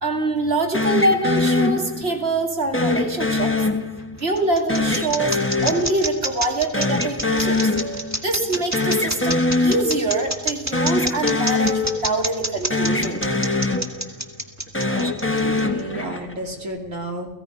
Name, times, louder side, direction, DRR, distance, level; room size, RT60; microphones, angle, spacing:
voice 1, 0.0-3.5 4.2-5.4 5.6-7.6 8.2-13.2, right 2 dB, 50° right, 3 dB, 3.0 m, -24 dB
sound 1, 0.7-2.3 2.7-4.3 4.7-6.5 6.7-8.3 8.5-10.3 10.7-12.5 12.7-14.3 14.7-16.4, left 2 dB, 10° left, 1.3 m, -23 dB
sound 2, 4.0-15.8, right 1 dB, 10° right, 2.0 m, -27 dB
voice 2, 14.9-17.3, right 1 dB, 70° right, 2 dB, 3.3 m, -32 dB
29.5 x 18.0 x 5.5 m, 1.1 s
omnidirectional pair, 1.4 m